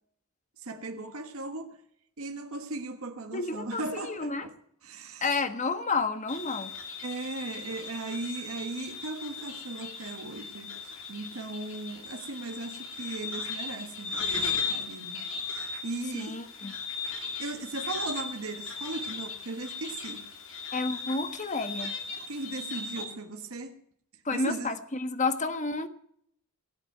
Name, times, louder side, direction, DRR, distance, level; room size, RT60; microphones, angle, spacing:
voice 1, 0.6-1.8 2.2-4.5 4.8-5.3 7.0-16.4 17.4-20.2 22.3-23.8 24.3-24.7, right 2 dB, 75° right, 1.4 m, -37 dB
voice 2, 3.3-4.4 5.2-6.7 16.1-16.7 20.7-22.0 24.2-25.9, left 3 dB, 35° left, 1.5 m, -30 dB
sound 1, 6.3-23.0, left 4 dB, 65° left, 2.7 m, -37 dB
17.5 x 8.1 x 9.1 m
head